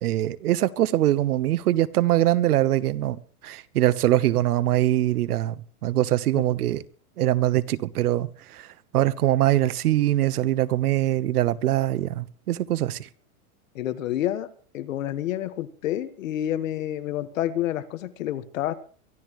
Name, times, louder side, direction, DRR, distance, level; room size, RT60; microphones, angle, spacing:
voice 1, 0.0-3.2 3.4-5.5 5.8-6.8 7.2-8.3 8.5-8.7 8.9-13.1, right 14 dB, 85° right, 17 dB, 1.2 m, -22 dB
voice 2, 13.7-14.5 14.7-18.7, left 12 dB, 60° left, 10 dB, 1.6 m, -29 dB
23.5 x 13.0 x 3.1 m, 0.41 s
supercardioid pair, 175°, 44 cm